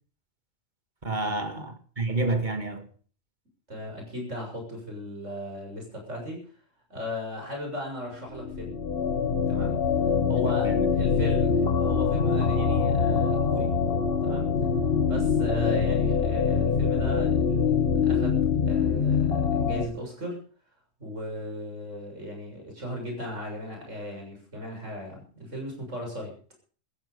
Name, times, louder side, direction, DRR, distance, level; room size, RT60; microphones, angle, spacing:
voice 1, 1.0-2.9 10.6-10.9, right 2 dB, 40° right, 2.1 m, -29 dB
voice 2, 3.7-6.4 6.9-8.8 9.5-9.8 10.3-13.7 14.2-14.5 15.1-20.4 21.0-26.3, equal, 80° right, 7.4 m, -37 dB
sound 1, 8.3-19.8, left 6 dB, 55° left, 1.7 m, -24 dB
15.0 x 14.5 x 5.3 m
omnidirectional pair, 1.3 m